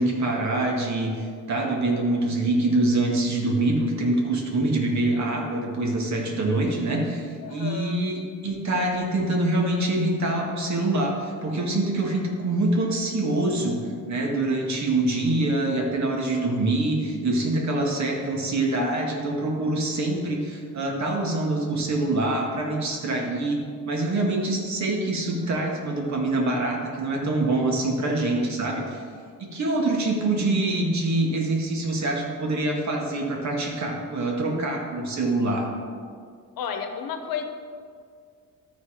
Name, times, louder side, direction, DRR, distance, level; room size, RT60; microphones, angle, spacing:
voice 1, 0.0-13.8 14.1-29.0 29.4-35.7, right 2 dB, 55° right, 0 dB, 1.8 m, -25 dB
voice 2, 7.4-8.0 28.3-28.5 28.8-29.0 36.6-37.4, left 7 dB, 85° left, 6 dB, 1.0 m, -33 dB
12.5 x 4.3 x 4.9 m, 2.1 s
cardioid pair, 115°, 34 cm